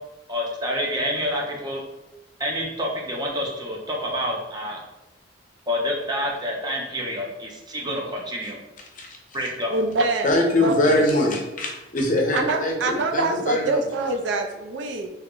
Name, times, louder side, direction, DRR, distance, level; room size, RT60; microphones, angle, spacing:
voice 1, 0.3-1.8 2.4-4.8 5.7-8.6 9.3-9.7, equal, 20° right, -1 dB, 0.6 m, -28 dB
voice 2, 9.7-10.3 10.6-11.0 12.3-15.1, right 3 dB, 70° right, 4 dB, 0.4 m, -25 dB
voice 3, 10.2-13.8, left 1 dB, 45° left, 0 dB, 0.6 m, -22 dB
2.9 x 2.1 x 3.7 m, 1.0 s
head